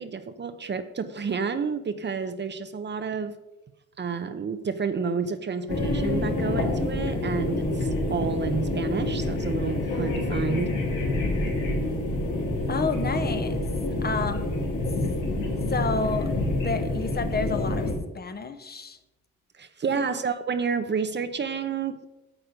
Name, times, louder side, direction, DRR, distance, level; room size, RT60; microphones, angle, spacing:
voice 1, 0.0-3.4 4.0-10.7 19.6-22.1, right 5 dB, 35° right, 0.8 m, -30 dB
sound 1, 5.7-17.9, left 2 dB, 85° left, 3.0 m, -27 dB
voice 2, 12.7-13.6 14.0-14.6 15.7-16.3 16.6-17.9 18.1-19.0 19.9-20.0, left 4 dB, 30° left, 1.1 m, -30 dB
9.0 x 7.9 x 5.1 m
cardioid pair, 90°, 30 cm